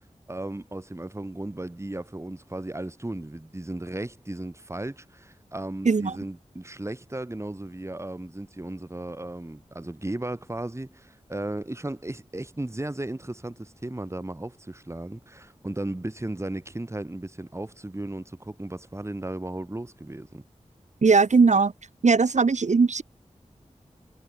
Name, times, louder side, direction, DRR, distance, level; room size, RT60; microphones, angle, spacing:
voice 1, 0.3-20.4, right 1 dB, 20° right, 2.0 m, -35 dB
voice 2, 21.0-21.7 22.0-23.0, right 4 dB, 70° right, 1.1 m, -19 dB
wide cardioid pair, 70°, 13 cm